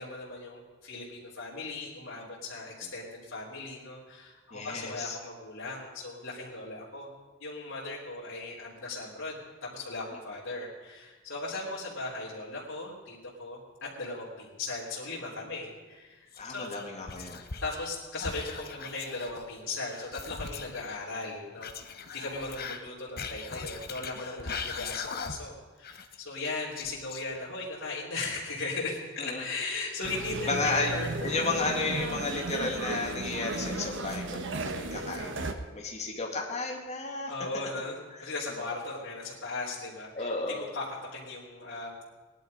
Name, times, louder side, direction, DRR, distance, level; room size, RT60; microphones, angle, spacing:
voice 1, 0.0-7.1 7.4-16.8 17.6-31.1 31.4-31.6 37.2-40.3 40.7-40.8 41.1-41.9, left 3 dB, 80° left, -7 dB, 3.3 m, -38 dB
voice 2, 4.5-5.2 16.4-17.4 29.2-29.4 30.5-30.9 31.2-37.3 38.5-38.7 40.1-40.7, left 3 dB, 35° left, -1 dB, 2.5 m, -33 dB
Whispering, 16.3-17.9 18.2-20.8 21.6-25.6 25.8-27.6, left 5 dB, 50° left, 1.1 m, -40 dB
sound 1, 30.0-35.5, right 2 dB, 65° right, 1.1 m, -35 dB
19.0 x 11.5 x 5.3 m, 1.2 s
head